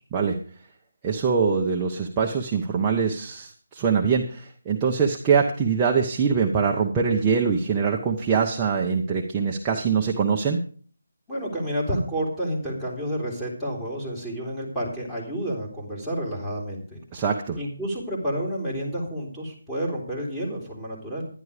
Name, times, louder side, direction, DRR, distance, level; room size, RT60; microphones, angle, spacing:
voice 1, 1.0-10.6 17.1-17.6, right 6 dB, 15° right, -1 dB, 1.0 m, -23 dB
voice 2, 11.3-17.0 17.5-21.3, equal, 5° left, -5 dB, 3.2 m, -30 dB
11.0 x 11.0 x 5.0 m, 0.43 s
figure-of-eight pair, 165°, 0 cm